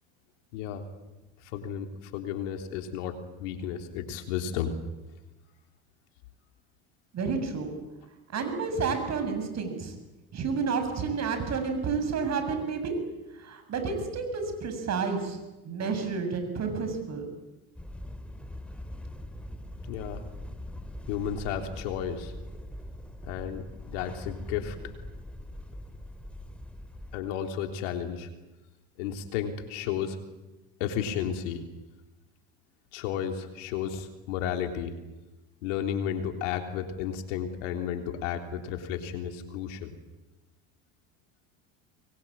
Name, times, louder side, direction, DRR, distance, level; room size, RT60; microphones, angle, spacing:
voice 1, 0.5-0.8 1.4-4.7 19.9-20.2 21.1-22.3 23.2-24.8 27.1-28.3 29.0-30.2 30.8-31.6 32.9-34.9 35.6-39.9, left 9 dB, 80° left, 5 dB, 3.5 m, -33 dB
voice 2, 7.1-7.7 8.3-9.9 10.3-12.9 13.3-15.4 15.6-17.3, right 5 dB, 45° right, 7 dB, 7.2 m, -30 dB
sound 1, 17.8-27.2, left 1 dB, 5° left, 3.0 m, -42 dB
25.0 x 22.5 x 8.8 m, 1.1 s
supercardioid pair, 90°, 37 cm